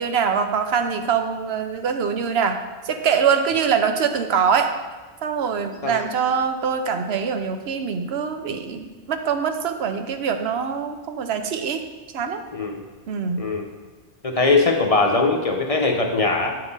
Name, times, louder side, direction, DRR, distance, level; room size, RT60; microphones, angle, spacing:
voice 1, 0.0-2.6 2.8-4.7 5.2-11.8 12.1-12.4 13.1-13.4, right 6 dB, 80° right, 7 dB, 0.9 m, -23 dB
voice 2, 14.2-16.6, left 3 dB, 40° left, 2 dB, 0.6 m, -20 dB
8.6 x 5.6 x 4.0 m, 1.3 s
omnidirectional pair, 1.1 m